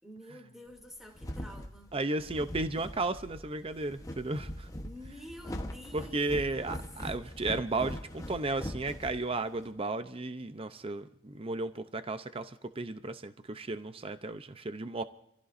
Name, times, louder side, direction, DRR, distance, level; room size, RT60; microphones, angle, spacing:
voice 1, 0.0-1.9 4.8-6.8, left 1 dB, ahead, 0 dB, 2.7 m, -49 dB
sound 1, 0.8-9.7, left 1 dB, 15° left, 1.1 m, -41 dB
voice 2, 1.9-4.7 5.9-15.0, right 2 dB, 25° right, 11 dB, 0.6 m, -34 dB
27.5 x 15.5 x 2.6 m, 0.81 s
head